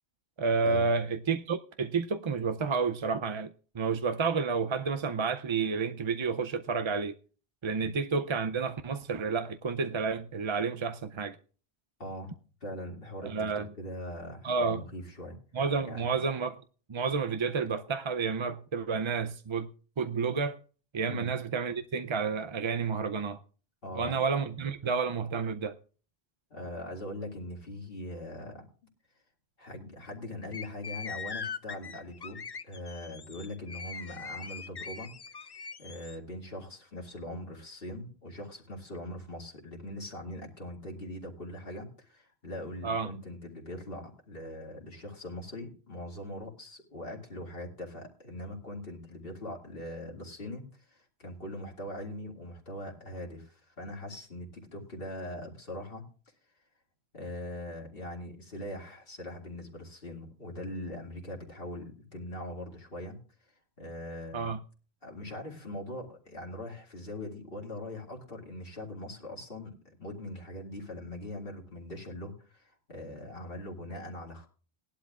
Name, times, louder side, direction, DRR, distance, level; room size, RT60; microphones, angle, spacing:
voice 1, 0.4-3.5 3.7-7.1 7.6-11.4 13.2-13.7 14.4-14.8 15.5-16.6 16.9-19.7 20.0-20.6 20.9-23.4 23.9-25.7 42.8-43.1 64.3-64.6, right 5 dB, 40° right, 0.5 m, -30 dB
voice 2, 12.0-12.3 12.6-15.4 15.8-16.1 21.0-21.3 23.8-24.2 26.5-28.7 29.6-56.0 57.1-63.2 63.8-64.5 65.0-74.5, left 1 dB, 60° left, 2.4 m, -41 dB
sound 1, 30.5-36.2, left 5 dB, 40° left, 0.4 m, -41 dB
19.0 x 11.5 x 2.4 m
omnidirectional pair, 1.1 m